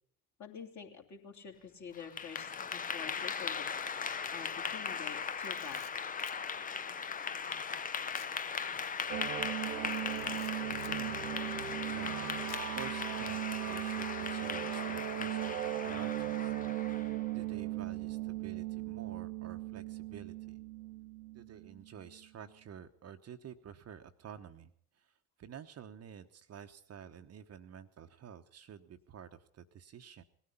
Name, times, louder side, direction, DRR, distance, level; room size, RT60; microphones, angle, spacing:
voice 1, 0.4-3.7 4.3-5.8, left 7 dB, 40° left, 3 dB, 2.8 m, -47 dB
Clapping / Applause, 1.9-17.2, left 6 dB, 20° left, 0.6 m, -38 dB
Camera, 5.4-6.4 8.1-8.4 8.7-8.9 9.9-11.0 12.5-12.9, left 11 dB, 70° left, 1.0 m, -55 dB
sound 1, 9.1-22.2, right 15 dB, 80° right, 1.0 m, -38 dB
voice 2, 10.6-11.3 11.8-20.6 21.3-30.2, right 8 dB, 35° right, 7 dB, 1.0 m, -51 dB
19.5 x 13.0 x 5.6 m, 0.62 s
figure-of-eight pair, 65°, 44 cm